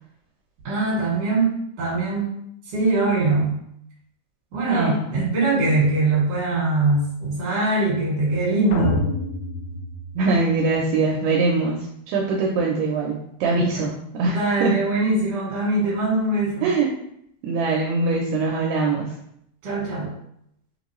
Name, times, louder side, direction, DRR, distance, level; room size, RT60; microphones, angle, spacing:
voice 1, 0.6-2.3 2.7-3.6 4.5-9.0 13.6-13.8 14.3-16.7 19.6-20.1, right 2 dB, 55° right, -5 dB, 2.3 m, -22 dB
sound 1, 8.7-10.8, left 2 dB, 80° left, 1.8 m, -28 dB
voice 2, 10.2-14.7 16.6-16.9 17.4-19.1, right 3 dB, 80° right, -2 dB, 2.2 m, -22 dB
5.6 x 2.3 x 3.0 m, 0.73 s
omnidirectional pair, 4.0 m